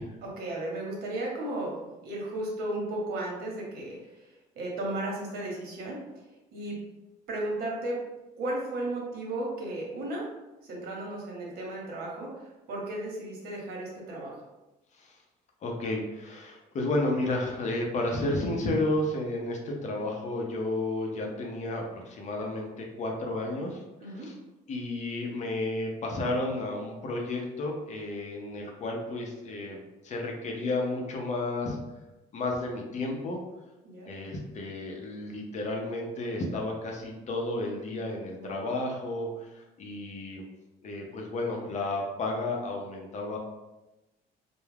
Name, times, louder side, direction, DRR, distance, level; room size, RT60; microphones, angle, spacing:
voice 1, 0.2-1.8 2.0-4.3 4.6-6.0 6.5-6.8 7.3-8.0 8.4-10.3 10.6-14.4 24.0-24.3 33.8-34.1 38.4-38.6, right 1 dB, 70° right, -2 dB, 0.9 m, -34 dB
voice 2, 15.6-24.4 24.7-31.8 32.3-33.4 34.1-40.4 40.8-43.4, left 2 dB, 45° left, 0 dB, 0.6 m, -32 dB
2.3 x 2.0 x 3.2 m, 1.0 s
cardioid pair, 110°, 17 cm